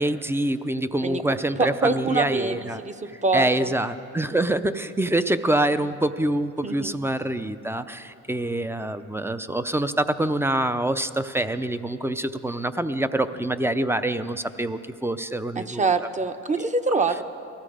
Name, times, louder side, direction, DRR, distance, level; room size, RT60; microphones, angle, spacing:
voice 1, 0.0-2.8 3.3-15.9 16.6-16.7, right 1 dB, 10° right, 11 dB, 0.5 m, -25 dB
voice 2, 1.6-3.7 6.6-6.9 15.6-17.2, right 3 dB, 25° right, 9 dB, 0.9 m, -25 dB
19.0 x 14.0 x 5.0 m, 2.5 s
cardioid pair, 90°, 30 cm